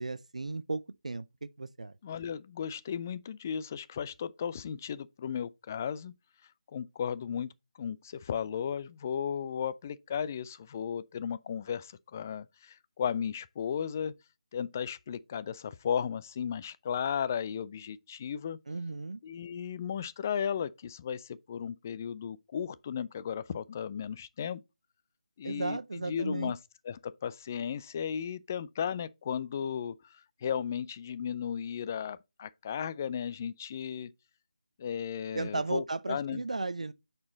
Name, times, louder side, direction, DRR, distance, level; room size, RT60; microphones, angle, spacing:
voice 1, 0.0-1.9 18.7-19.2 25.4-26.5 35.3-36.9, right 3 dB, 65° right, 0.5 m, -35 dB
voice 2, 2.0-6.1 6.7-7.5 7.8-14.1 14.5-18.6 19.2-24.6 25.4-26.6 26.8-34.1 34.8-36.4, left 8 dB, 20° left, 0.3 m, -35 dB
8.4 x 4.4 x 3.8 m
figure-of-eight pair, 155°, 4 cm